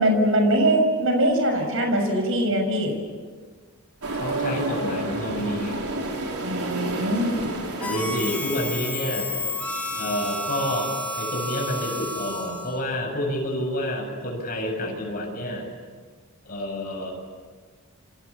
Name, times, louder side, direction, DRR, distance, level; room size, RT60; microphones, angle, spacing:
voice 1, 0.0-2.9 6.4-7.3, right 1 dB, 65° right, 4 dB, 6.5 m, -22 dB
sound 1, 4.0-10.6, right 2 dB, 85° right, 4.6 m, -31 dB
voice 2, 4.1-5.8 7.8-9.4 9.9-15.7 16.4-17.1, left 1 dB, 40° left, 1 dB, 7.6 m, -29 dB
Harmonica, 7.8-12.8, left 1 dB, 5° left, 3.3 m, -31 dB
29.5 x 26.0 x 7.2 m, 1.5 s
head